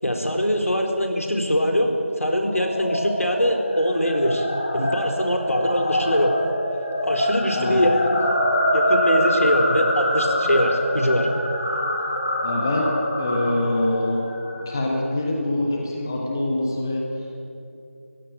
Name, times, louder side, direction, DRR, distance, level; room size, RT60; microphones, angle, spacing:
voice 1, 0.0-1.9 2.2-4.5 4.7-6.3 7.0-8.1 8.7-11.3, equal, 85° left, 3 dB, 4.2 m, -22 dB
sound 1, 2.4-14.8, left 1 dB, 35° left, 3.4 m, -25 dB
voice 2, 7.5-7.8 12.4-14.2 14.6-17.0, left 1 dB, 15° left, 0 dB, 1.5 m, -24 dB
22.5 x 16.0 x 9.1 m, 2.7 s
figure-of-eight pair, 170°, 7 cm